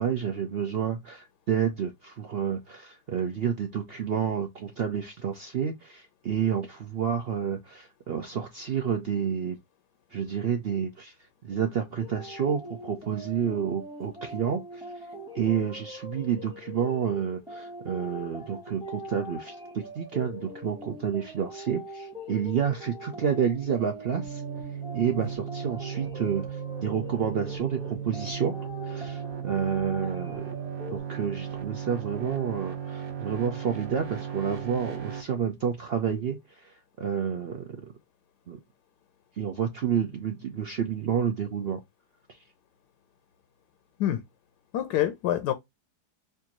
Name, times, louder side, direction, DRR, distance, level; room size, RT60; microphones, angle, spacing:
voice 1, 0.0-9.6 10.1-11.1 11.4-14.8 15.3-24.4 24.9-28.5 28.8-30.4 30.9-37.7 38.5-38.6 39.4-41.8, right 7 dB, 70° right, 0.5 m, -29 dB
sound 1, 12.0-31.0, equal, 5° right, 1.1 m, -42 dB
sound 2, 24.1-35.2, right 8 dB, 50° right, 1.3 m, -36 dB
voice 2, 44.7-45.5, left 12 dB, 85° left, 1.2 m, -26 dB
4.5 x 2.6 x 2.8 m
omnidirectional pair, 1.8 m